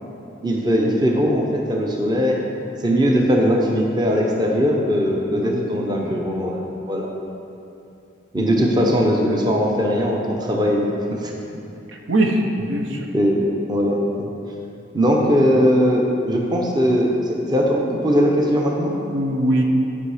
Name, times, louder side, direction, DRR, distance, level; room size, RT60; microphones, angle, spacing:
voice 1, 0.4-2.4 2.8-7.1 8.3-11.3 13.1-14.3 14.9-19.0, equal, 20° right, -1 dB, 0.8 m, -20 dB
voice 2, 5.3-5.8 12.1-13.0 19.1-19.6, right 1 dB, 80° right, 2 dB, 0.9 m, -22 dB
11.0 x 5.5 x 5.0 m, 2.7 s
head